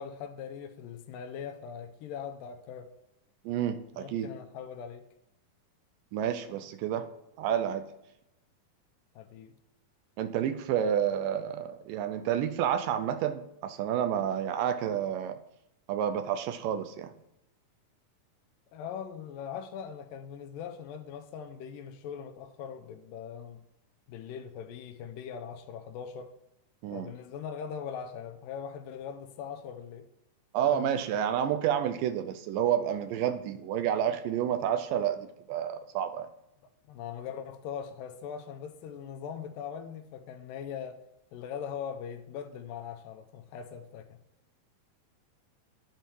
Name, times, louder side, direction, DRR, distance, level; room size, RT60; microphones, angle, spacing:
voice 1, 0.0-2.9 3.9-5.0 9.2-9.5 18.7-23.6 24.1-26.3 26.9-30.1 30.7-30.9 36.9-41.0 41.3-44.2, left 7 dB, 85° left, 2.3 m, -41 dB
voice 2, 3.5-4.3 6.1-7.1 7.4-7.9 10.2-15.4 15.9-17.1 26.8-27.1 30.5-36.3, right 9 dB, 85° right, 2.2 m, -29 dB
10.5 x 4.5 x 4.6 m
omnidirectional pair, 3.9 m